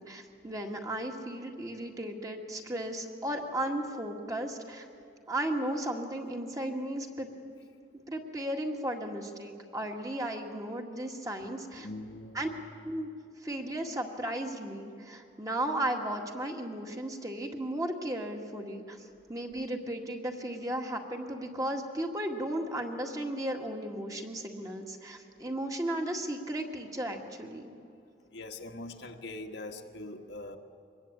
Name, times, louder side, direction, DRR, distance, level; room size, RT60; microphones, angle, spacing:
voice 1, 0.0-4.9 5.3-7.3 8.1-11.9 12.3-12.5 12.8-13.1 13.4-27.7, right 1 dB, 20° right, 2 dB, 1.9 m, -35 dB
voice 2, 11.8-12.5 28.3-30.6, left 2 dB, 70° left, 3 dB, 1.6 m, -42 dB
24.5 x 21.5 x 8.7 m, 2.5 s
head